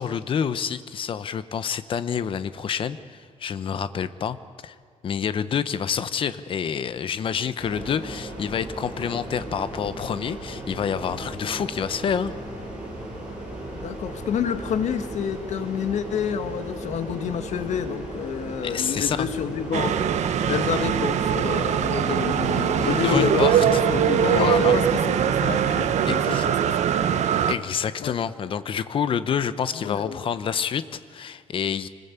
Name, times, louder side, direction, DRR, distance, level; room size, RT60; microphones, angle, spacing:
voice 1, 0.0-4.4 4.6-4.8 5.0-12.3 18.6-19.3 22.6-23.8 24.3-24.8 26.1-26.5 27.5-31.9, left 7 dB, 45° left, 13 dB, 0.9 m, -28 dB
sound 1, 7.6-26.2, right 1 dB, 10° right, 6.4 m, -36 dB
voice 2, 13.7-20.0 20.4-27.2 28.0-28.2 29.7-30.2, left 8 dB, 65° left, 9 dB, 1.7 m, -29 dB
sound 2, 19.7-27.5, right 9 dB, 65° right, 1.2 m, -22 dB
25.5 x 20.5 x 8.3 m, 2.2 s
cardioid pair, 165°, 13 cm